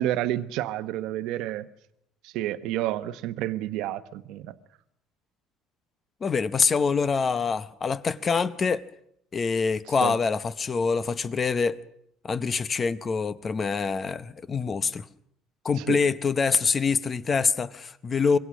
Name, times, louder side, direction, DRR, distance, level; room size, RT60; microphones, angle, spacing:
voice 1, 0.0-1.7 2.2-4.6 10.0-10.1 15.8-16.0, right 13 dB, 65° right, 1.1 m, -29 dB
voice 2, 6.2-8.9 9.3-11.8 12.2-15.0 15.6-18.4, left 5 dB, 20° left, 0.8 m, -25 dB
25.5 x 22.5 x 6.3 m
cardioid pair, 170°, 0 cm